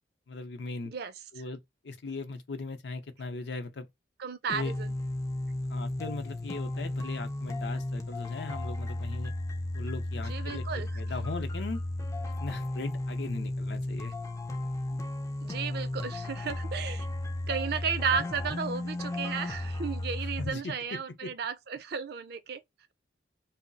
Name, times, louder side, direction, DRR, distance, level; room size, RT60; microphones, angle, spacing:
voice 1, 0.3-0.9 1.3-3.9 4.5-4.7 5.7-9.3 9.7-11.8 12.4-14.1 20.4-20.7 21.2-21.3, left 3 dB, 65° left, 0.6 m, -38 dB
voice 2, 4.2-4.9 10.3-10.9 15.4-17.1 17.5-22.6, right 6 dB, 55° right, 0.4 m, -34 dB
sound 1, 4.5-20.5, left 1 dB, 15° left, 0.3 m, -34 dB
2.2 x 2.0 x 3.8 m
head